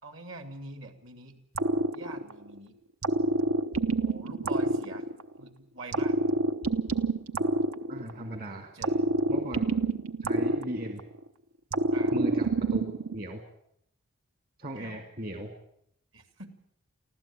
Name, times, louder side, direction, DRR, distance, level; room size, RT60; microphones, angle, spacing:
voice 1, 0.0-1.4 1.9-2.7 3.9-5.0 5.4-6.2 8.7-9.1 11.9-12.2 14.7-15.0 16.1-16.5, right 2 dB, 65° right, 8 dB, 2.7 m, -44 dB
sound 1, 1.5-2.5 3.0-5.4 5.9-8.3 8.8-11.2 11.7-13.2, right 2 dB, 85° right, 1.0 m, -27 dB
voice 2, 7.9-8.7 9.3-9.6 10.2-11.0 12.1-13.4 14.6-15.5, equal, 45° right, 5 dB, 2.0 m, -37 dB
24.5 x 15.5 x 8.7 m, 0.75 s
head